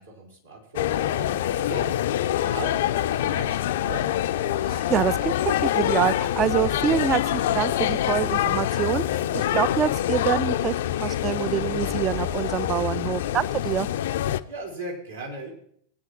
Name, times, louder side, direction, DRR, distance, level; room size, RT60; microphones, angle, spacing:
voice 1, 0.0-2.0 2.3-4.1 14.5-15.5, right 3 dB, 80° right, -5 dB, 4.1 m, -38 dB
sound 1, 0.8-14.4, left 12 dB, 55° left, 0.4 m, -25 dB
sound 2, 4.5-11.0 11.5-14.7, right 3 dB, 45° right, 1.4 m, -45 dB
voice 2, 4.6-5.3 5.6-13.9, right 9 dB, 30° right, 18 dB, 0.4 m, -26 dB
19.5 x 9.5 x 2.9 m, 0.65 s
figure-of-eight pair, 90°, 0 cm